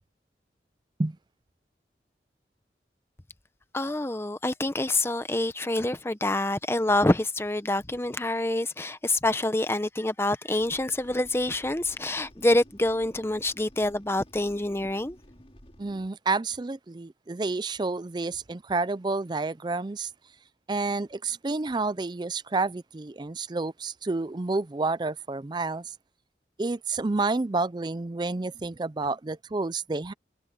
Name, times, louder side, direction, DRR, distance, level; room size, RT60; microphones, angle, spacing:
voice 1, 3.7-15.2, left 1 dB, 15° left, 0.8 m, -26 dB
sound 1, 10.6-16.1, equal, 30° left, 5.5 m, -53 dB
voice 2, 15.8-20.1 20.7-25.8 26.6-30.1, right 3 dB, 25° right, 0.4 m, -29 dB
head